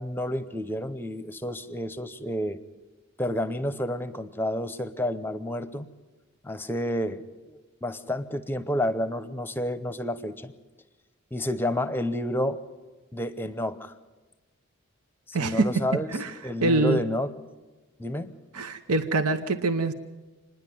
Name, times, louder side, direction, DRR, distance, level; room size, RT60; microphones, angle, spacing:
voice 1, 0.0-2.6 3.2-5.9 6.4-7.2 7.5-10.5 11.3-12.6 13.1-13.9 15.3-16.1 16.4-17.3 18.0-18.3, left 1 dB, 10° left, 13 dB, 0.7 m, -30 dB
voice 2, 15.3-15.7 16.1-16.3 16.6-17.0 18.5-19.9, right 2 dB, 90° right, 9 dB, 0.9 m, -24 dB
27.0 x 10.5 x 9.3 m, 1.2 s
head